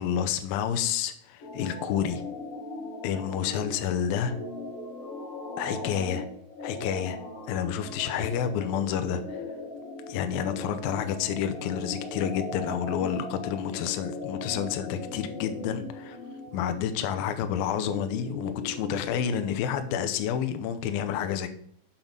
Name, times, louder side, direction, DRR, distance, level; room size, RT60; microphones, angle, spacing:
voice 1, 0.0-2.2 3.0-4.3 5.6-6.3 6.6-7.2 7.5-9.4 10.1-16.2 16.5-21.5, left 8 dB, 80° left, 8 dB, 2.3 m, -29 dB
sound 1, 1.4-20.4, left 2 dB, 60° left, 1.6 m, -39 dB
7.3 x 6.0 x 5.2 m, 0.65 s
omnidirectional pair, 4.6 m